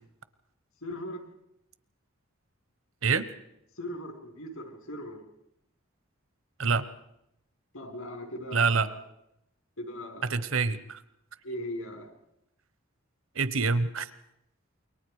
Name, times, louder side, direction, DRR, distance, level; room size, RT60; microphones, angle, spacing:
voice 1, 0.8-1.2 3.8-5.2 7.7-9.0 9.8-10.3 11.4-12.1, left 1 dB, 85° left, 5 dB, 4.7 m, -39 dB
voice 2, 8.5-8.9 10.3-11.0 13.3-14.1, right 4 dB, 75° right, 14 dB, 1.2 m, -26 dB
28.5 x 23.0 x 4.9 m, 0.82 s
head